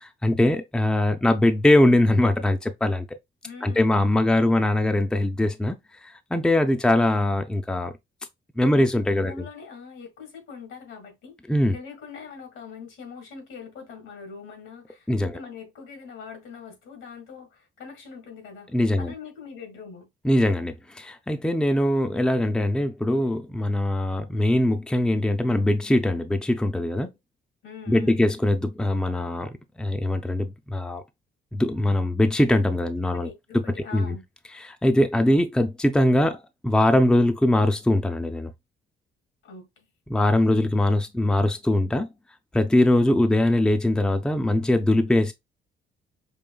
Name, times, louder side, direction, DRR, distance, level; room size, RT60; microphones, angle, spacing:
voice 1, 0.0-3.0 3.6-5.8 6.0-7.9 8.6-9.3 11.5-11.8 15.1-15.4 18.7-19.1 20.2-27.1 27.9-29.5 29.8-31.0 31.5-33.6 33.9-34.2 34.6-38.5 40.1-42.1 42.5-45.3, left 1 dB, 5° left, 0.5 m, -22 dB
voice 2, 3.4-4.7 8.8-11.3 11.7-20.1 27.6-28.2 32.9-34.2 39.4-39.9, left 5 dB, 80° left, 1.6 m, -43 dB
5.2 x 2.7 x 2.3 m
cardioid pair, 90°, 20 cm